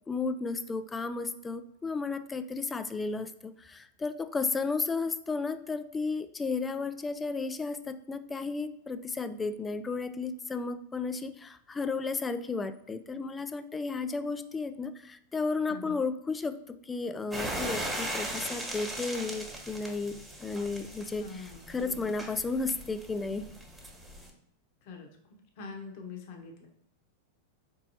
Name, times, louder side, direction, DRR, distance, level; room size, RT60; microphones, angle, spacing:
voice 1, 0.1-16.6 16.9-23.5, left 4 dB, 15° left, 11 dB, 0.3 m, -33 dB
voice 2, 15.7-16.0 21.2-22.1 24.8-25.1 25.6-26.7, left 4 dB, 55° left, 2 dB, 0.9 m, -44 dB
sound 1, 17.3-24.3, right 1 dB, 10° right, 1.4 m, -39 dB
4.4 x 2.8 x 2.9 m, 0.76 s
hypercardioid pair, 105°, 0 cm